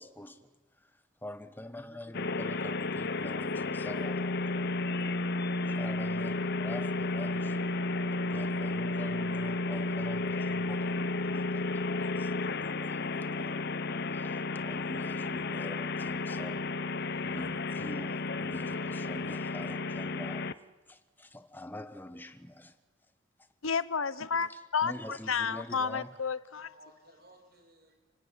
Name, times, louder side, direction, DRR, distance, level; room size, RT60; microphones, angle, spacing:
voice 1, 0.0-0.3 1.2-4.7 5.6-7.6 7.9-20.5 20.9-22.8 23.4-23.5 24.5-26.2, left 1 dB, 10° left, 1.2 m, -46 dB
sound 1, 2.1-20.5, left 3 dB, 50° left, 0.8 m, -32 dB
voice 2, 16.9-17.4 26.7-28.1, right 1 dB, 50° right, 6.8 m, -59 dB
voice 3, 23.6-26.7, left 6 dB, 80° left, 1.0 m, -31 dB
29.5 x 18.5 x 9.9 m
head